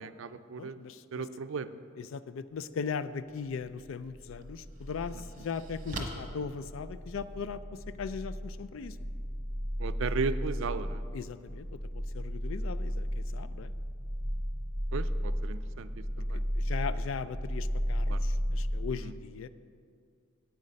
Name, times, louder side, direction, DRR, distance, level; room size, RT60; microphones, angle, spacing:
voice 1, 0.0-0.8 1.1-1.7 9.8-11.0 14.9-15.9 16.2-16.4 18.1-18.2 19.0-19.1, right 5 dB, 70° right, 12 dB, 0.4 m, -35 dB
voice 2, 0.6-1.2 2.0-9.0 11.1-11.7 11.9-13.7 16.5-19.5, left 5 dB, 70° left, 14 dB, 0.4 m, -39 dB
sound 1, 3.7-3.8 4.4-7.4, right 1 dB, 40° right, 1.1 m, -44 dB
sound 2, 4.2-18.9, equal, 45° left, 2.5 m, -34 dB
9.5 x 8.4 x 5.1 m, 2.2 s
head